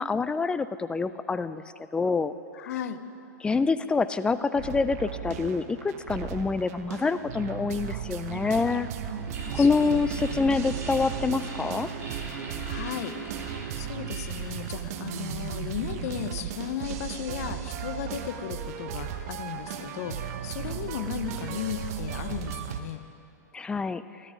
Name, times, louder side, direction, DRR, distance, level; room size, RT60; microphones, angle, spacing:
voice 1, 0.0-1.6 1.9-2.3 3.4-8.9 9.5-11.9 23.5-24.0, left 4 dB, 10° left, 13 dB, 0.4 m, -26 dB
voice 2, 2.5-3.0 9.3-9.7 10.4-10.7 12.6-23.0, left 10 dB, 60° left, 10 dB, 0.8 m, -36 dB
sound 1, 4.6-22.8, right 9 dB, 55° right, 1.0 m, -36 dB
sound 2, 9.1-14.9, right 4 dB, 25° right, 4.1 m, -40 dB
14.0 x 13.0 x 5.0 m, 2.7 s
hypercardioid pair, 120°, 10 cm